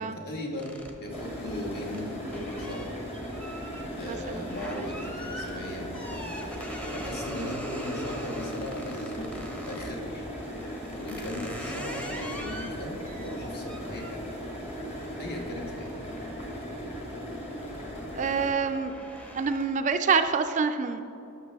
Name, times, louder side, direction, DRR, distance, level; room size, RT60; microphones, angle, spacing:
voice 1, 0.0-3.0 4.0-6.3 6.9-9.3 9.7-10.2 11.0-14.2 15.2-15.9, left 1 dB, 45° left, 0 dB, 1.4 m, -38 dB
sound 1, 0.6-10.0 10.6-17.0 17.4-17.8 18.1-19.9, equal, 5° left, 0.8 m, -43 dB
sound 2, 1.1-18.5, equal, 30° left, 1.5 m, -37 dB
voice 2, 4.0-4.5 7.3-7.5 18.2-18.9 19.3-21.0, right 5 dB, 35° right, 8 dB, 0.3 m, -27 dB
11.5 x 6.6 x 3.4 m, 2.8 s
head